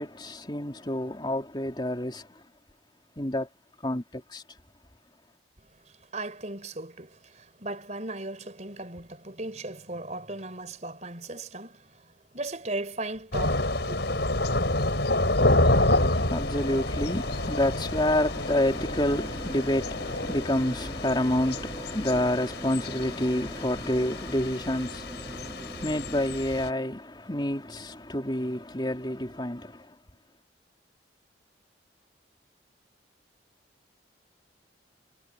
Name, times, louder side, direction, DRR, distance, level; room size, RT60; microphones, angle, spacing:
voice 1, 0.0-2.3 3.2-3.5 3.8-4.4 15.7-29.9, left 1 dB, 25° left, 3.5 m, -29 dB
voice 2, 5.6-14.2, right 2 dB, 40° right, 4.2 m, -37 dB
Thunder / Rain, 13.3-26.7, left 1 dB, 60° left, 5.9 m, -28 dB
sound 1, 18.3-26.4, equal, 15° right, 4.0 m, -42 dB
head